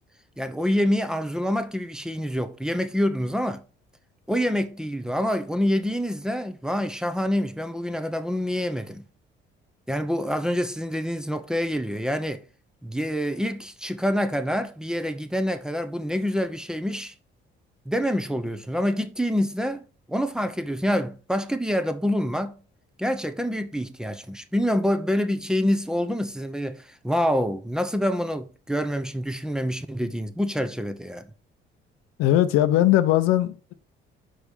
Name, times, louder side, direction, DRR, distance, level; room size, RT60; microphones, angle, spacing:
voice 1, 0.4-3.6 4.3-9.0 9.9-12.4 12.8-17.1 17.9-19.8 20.1-22.6 23.0-31.3, equal, 5° right, 0.8 m, -26 dB
voice 2, 32.2-33.7, left 13 dB, 90° left, 0.7 m, -20 dB
5.0 x 4.9 x 5.4 m
cardioid pair, 100°, 21 cm